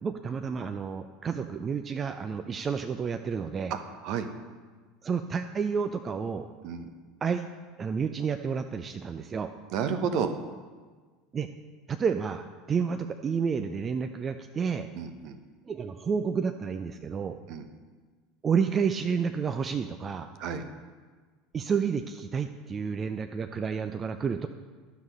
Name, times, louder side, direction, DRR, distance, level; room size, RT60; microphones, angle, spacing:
voice 1, 0.0-3.8 5.0-6.5 7.2-7.4 7.8-9.5 11.3-11.5 11.9-14.9 15.7-17.4 18.4-20.3 21.5-24.5, right 6 dB, 30° right, 7 dB, 0.5 m, -30 dB
voice 2, 9.7-10.3 15.0-15.4 17.5-17.7 20.4-20.6, right 7 dB, 55° right, 9 dB, 0.9 m, -30 dB
11.5 x 6.2 x 5.4 m, 1.4 s
figure-of-eight pair, 75°, 0 cm